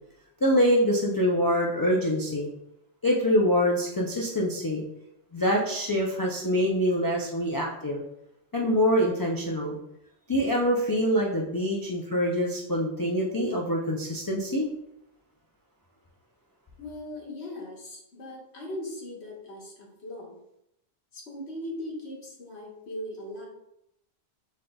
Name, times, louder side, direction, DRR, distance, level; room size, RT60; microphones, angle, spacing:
voice 1, 0.4-2.5 3.0-4.8 5.3-8.0 8.5-9.8 10.3-14.7, equal, 30° left, -2 dB, 0.4 m, -25 dB
voice 2, 16.8-20.4 21.1-23.5, left 1 dB, 90° left, -2 dB, 1.4 m, -39 dB
5.3 x 3.8 x 2.3 m, 0.81 s
omnidirectional pair, 1.1 m